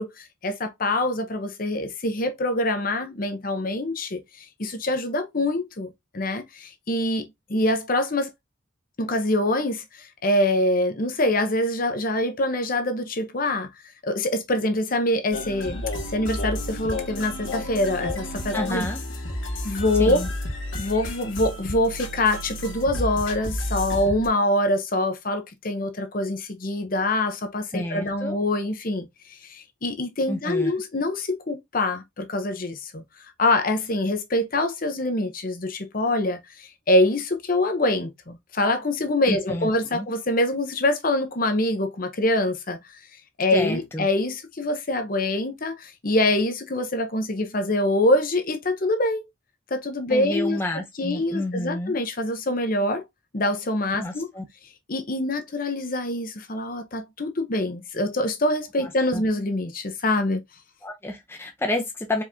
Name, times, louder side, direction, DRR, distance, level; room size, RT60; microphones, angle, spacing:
voice 1, 0.0-8.3 9.0-13.7 14.0-15.8 16.1-18.9 19.6-20.2 20.7-33.0 33.4-42.8 43.4-49.2 49.7-50.6 51.0-53.0 53.3-54.3 54.9-60.4, left 1 dB, 45° left, 0.8 m, -25 dB
sound 1, 15.3-24.3, left 1 dB, 75° left, 1.7 m, -31 dB
voice 2, 18.5-19.0 20.0-20.3 27.7-28.4 30.3-30.7 39.3-40.1 43.5-44.1 50.1-51.9 54.0-54.4 58.8-59.2 60.8-62.2, left 1 dB, 10° left, 0.7 m, -30 dB
4.7 x 3.6 x 2.7 m
head